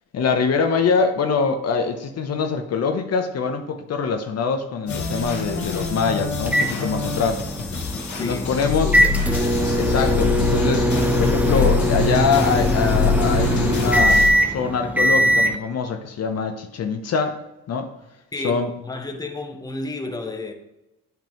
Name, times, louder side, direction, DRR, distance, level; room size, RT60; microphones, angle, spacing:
voice 1, 0.1-7.4 8.2-8.9 9.8-10.9 11.1-17.4 17.7-17.9 18.4-18.7, left 5 dB, 55° left, 0.8 m, -23 dB
sound 1, 4.9-14.3, left 4 dB, 70° left, 1.5 m, -25 dB
sound 2, 6.5-15.6, equal, 5° right, 0.5 m, -21 dB
voice 2, 8.2-9.4 18.3-20.5, left 2 dB, 15° left, 0.9 m, -32 dB
9.0 x 5.3 x 3.0 m
cardioid pair, 90°, 30 cm